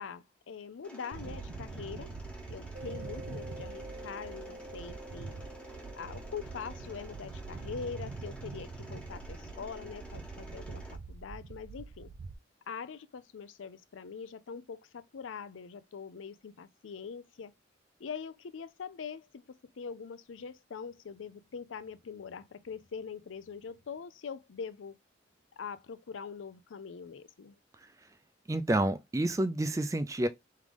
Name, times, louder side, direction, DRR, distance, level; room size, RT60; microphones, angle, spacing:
voice 1, 0.0-2.1 2.5-5.3 5.9-12.1 12.7-17.5 18.0-24.9 25.6-27.6, left 6 dB, 90° left, 0.5 m, -43 dB
Mechanisms, 0.8-11.0, right 1 dB, 5° left, 0.8 m, -50 dB
sound 1, 1.1-12.3, right 4 dB, 80° right, 0.4 m, -44 dB
sound 2, 2.7-8.1, right 1 dB, 50° right, 1.1 m, -49 dB
voice 2, 28.5-30.3, right 1 dB, 15° right, 0.3 m, -29 dB
3.7 x 3.3 x 3.5 m
head